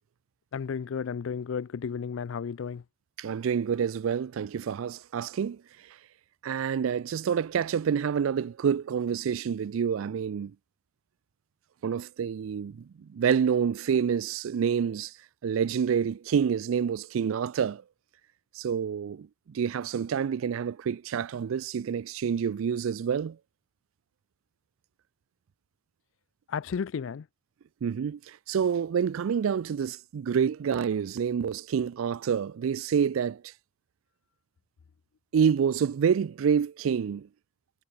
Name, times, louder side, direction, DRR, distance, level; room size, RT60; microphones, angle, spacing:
voice 1, 0.5-2.8 26.5-27.3, left 6 dB, 70° left, 0.4 m, -33 dB
voice 2, 3.2-5.6 6.4-10.5 11.8-15.1 15.4-17.8 18.6-23.4 27.8-33.5 35.3-37.3, right 7 dB, 75° right, 0.4 m, -28 dB
head